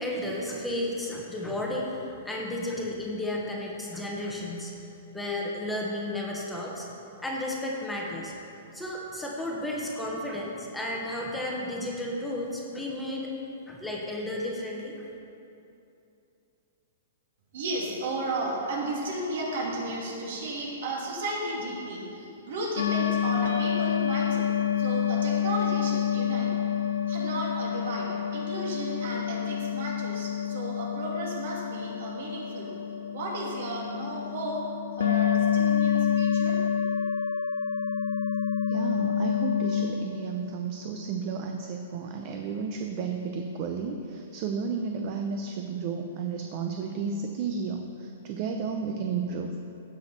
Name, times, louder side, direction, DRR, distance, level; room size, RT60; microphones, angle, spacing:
voice 1, 0.0-4.7 5.1-6.9 7.2-8.3 8.7-13.3 13.7-15.1, left 1 dB, 5° left, -3 dB, 1.0 m, -33 dB
voice 2, 17.5-24.5 24.8-26.5 27.1-32.7 33.1-34.6 35.0-36.6, right 2 dB, 65° right, -3 dB, 2.6 m, -34 dB
sound 1, 22.8-39.9, left 9 dB, 75° left, 0.8 m, -28 dB
voice 3, 38.7-49.6, right 5 dB, 35° right, 4 dB, 0.6 m, -32 dB
16.0 x 6.1 x 4.3 m, 2.7 s
hypercardioid pair, 160°, 0 cm